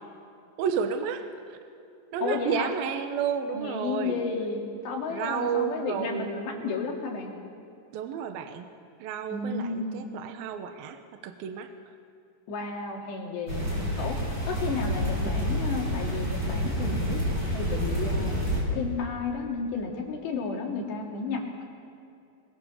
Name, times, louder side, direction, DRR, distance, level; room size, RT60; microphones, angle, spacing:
voice 1, 0.6-1.6 2.1-4.2 5.1-6.7 7.9-8.7 9.0-11.7 13.6-14.0, right 7 dB, 70° right, 7 dB, 2.7 m, -32 dB
voice 2, 2.2-2.7 3.5-7.3 9.3-10.1 12.5-13.6 14.0-14.2 14.4-18.3 18.7-21.7, left 4 dB, 80° left, 0 dB, 5.0 m, -32 dB
sound 1, 13.5-18.6, equal, 25° right, 7.1 m, -28 dB
25.0 x 22.0 x 7.2 m, 2.6 s
omnidirectional pair, 4.9 m